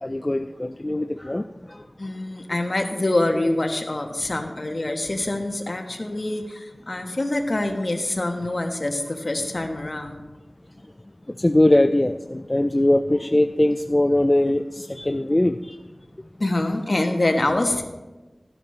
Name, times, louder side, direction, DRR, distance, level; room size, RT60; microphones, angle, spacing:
voice 1, 0.0-1.9 11.3-15.8, left 1 dB, 30° left, 0.4 m, -21 dB
voice 2, 2.0-10.2 16.4-17.8, left 2 dB, 55° left, 1.3 m, -25 dB
14.0 x 11.0 x 3.3 m
wide cardioid pair, 55°, 0 cm